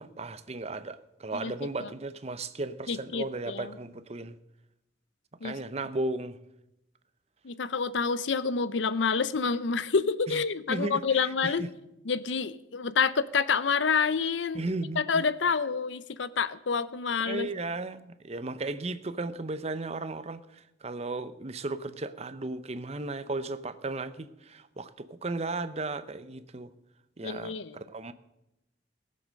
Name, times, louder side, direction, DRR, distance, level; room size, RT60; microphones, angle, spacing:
voice 1, 0.0-4.4 5.4-6.4 10.3-10.4 10.7-11.7 14.5-15.2 17.3-26.7 27.2-27.5 27.9-28.1, right 2 dB, 35° right, 12 dB, 0.7 m, -35 dB
voice 2, 2.9-3.7 5.4-5.6 7.4-11.7 12.0-14.6 15.0-17.5 27.2-27.8, left 5 dB, 90° left, 16 dB, 0.7 m, -28 dB
18.5 x 7.8 x 6.4 m, 0.88 s
head